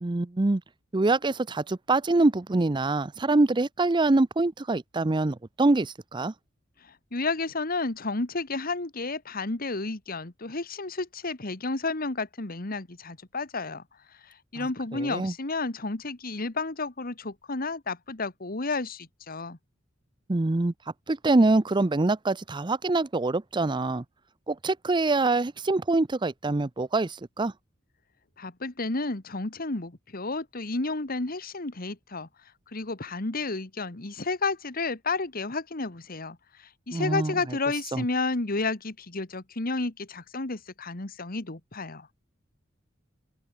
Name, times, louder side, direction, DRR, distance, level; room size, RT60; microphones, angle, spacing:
voice 1, 0.0-0.6 0.9-6.3 14.6-14.7 14.9-15.3 20.3-20.7 21.1-24.0 24.5-27.5 36.9-37.3 37.9-38.0, right 2 dB, 25° right, 0.6 m, -25 dB
voice 2, 6.8-13.8 14.2-19.6 28.4-32.3 32.7-42.1, left 3 dB, 50° left, 1.8 m, -31 dB
open air
head